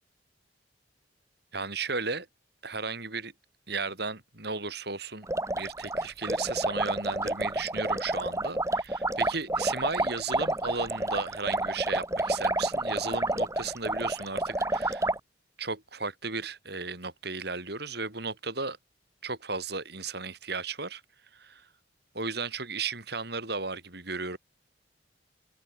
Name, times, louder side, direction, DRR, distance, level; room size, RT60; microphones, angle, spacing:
voice 1, 1.5-2.3 2.6-3.3 3.7-15.1 15.6-18.8 19.2-21.0 21.3-21.7 22.1-24.4, right 4 dB, 60° right, 7.0 m, -35 dB
sound 1, 5.2-15.2, right 2 dB, 15° right, 6.3 m, -29 dB
head